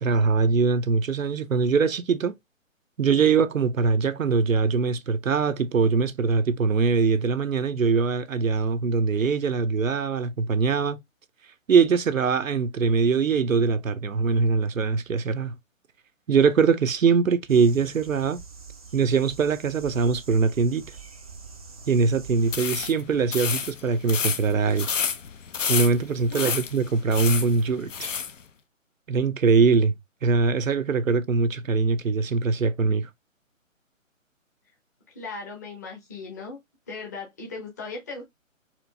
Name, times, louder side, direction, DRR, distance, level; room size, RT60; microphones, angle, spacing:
voice 1, 0.0-2.3 3.0-11.0 11.7-15.6 16.3-18.4 18.9-20.9 21.9-24.9 25.7-28.1 29.1-29.9 30.2-33.1, right 5 dB, 80° right, 0.6 m, -22 dB
sound 1, 17.5-22.6, right 5 dB, 30° right, 0.5 m, -44 dB
sound 2, 22.4-28.3, left 6 dB, 70° left, 0.7 m, -30 dB
voice 2, 35.1-36.6 36.9-38.2, left 3 dB, 15° left, 0.7 m, -37 dB
4.4 x 2.4 x 2.6 m
figure-of-eight pair, 140°, 40 cm